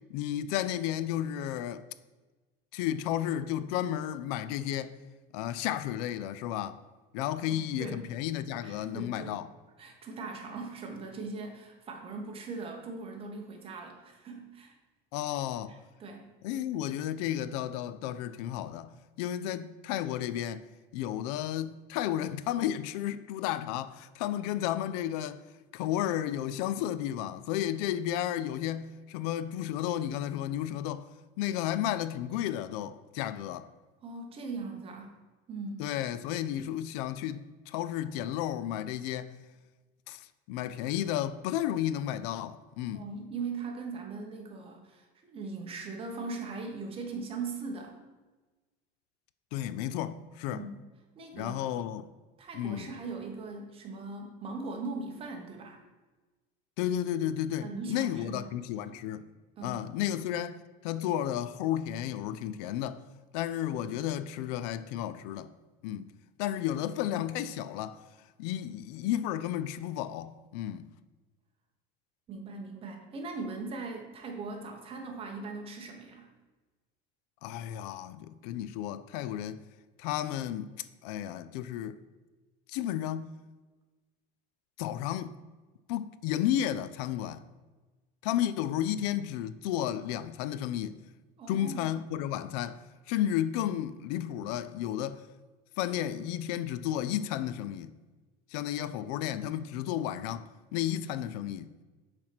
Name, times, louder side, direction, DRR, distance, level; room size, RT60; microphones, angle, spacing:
voice 1, 0.1-1.8 2.7-5.0 5.3-6.8 7.1-9.5 15.1-15.7 16.4-18.9 19.2-20.6 20.9-25.4 25.7-31.1 31.4-33.7 35.8-39.4 40.1-43.1 49.5-50.6 51.3-52.1 52.5-52.9 56.8-59.2 59.6-63.0 63.3-65.5 65.8-66.1 66.4-68.0 68.4-70.9 77.4-79.6 80.0-80.7 81.0-82.0 82.7-83.3 84.8-85.3 85.9-87.4 88.2-91.0 91.5-95.2 95.8-97.9 98.5-101.7, left 11 dB, 85° left, 0.4 m, -32 dB
voice 2, 7.5-8.0 8.6-9.3 9.8-14.7 16.0-16.3 34.0-35.1 35.5-35.9 42.9-48.0 50.5-50.8 51.2-51.7 52.4-55.8 57.6-58.5 58.9-59.0 59.6-59.9 72.3-76.3 91.4-92.0, right 3 dB, 30° right, 1.1 m, -40 dB
6.5 x 4.3 x 6.0 m
cardioid pair, 155°, 20 cm